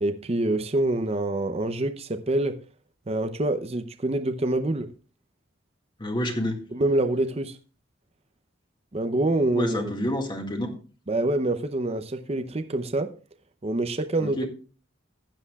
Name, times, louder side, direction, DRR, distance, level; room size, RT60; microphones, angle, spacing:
voice 1, 0.0-2.6 3.1-4.9 6.7-7.6 8.9-9.9 11.1-13.1 13.6-14.5, right 2 dB, 30° right, 0.7 m, -26 dB
voice 2, 6.0-6.6 9.5-10.7 14.2-14.5, equal, 25° left, 1.9 m, -28 dB
15.5 x 10.5 x 2.3 m
head